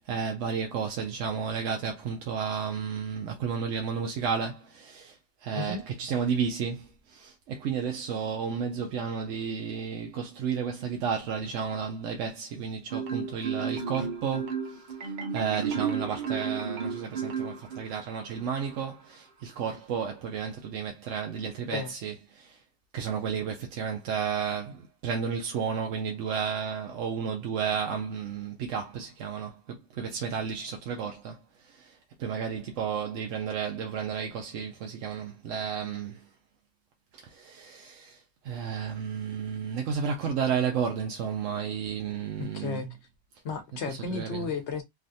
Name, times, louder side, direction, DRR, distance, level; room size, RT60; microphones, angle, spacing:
voice 1, 0.0-22.6 22.9-36.3 37.1-42.8 43.9-44.5, right 6 dB, 85° right, 0.9 m, -32 dB
Marimba xylophone, 12.9-18.1, right 6 dB, 50° right, 0.6 m, -32 dB
voice 2, 42.4-42.9 43.4-44.8, left 5 dB, 70° left, 1.1 m, -33 dB
3.4 x 2.4 x 2.5 m
omnidirectional pair, 1.2 m